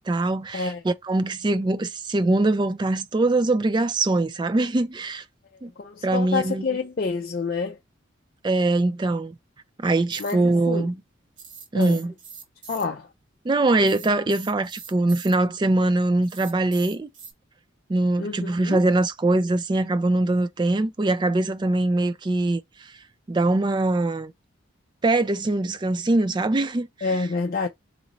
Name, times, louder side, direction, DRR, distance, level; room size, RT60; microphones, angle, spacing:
voice 1, 0.0-5.2 5.6-5.7 6.0-6.6 8.4-9.3 9.8-10.9 11.7-12.1 13.4-17.1 17.9-22.9 23.3-24.3 25.0-26.9, right 2 dB, 25° right, 0.3 m, -22 dB
voice 2, 5.8-7.8 10.2-10.9 11.7-12.0 12.7-13.1 18.2-18.9 27.0-27.7, left 4 dB, 50° left, 0.4 m, -28 dB
sound 1, 10.1-10.3 11.4-12.8 13.8-15.3 16.2-17.3, right 6 dB, 65° right, 1.6 m, -42 dB
3.1 x 3.0 x 3.9 m
head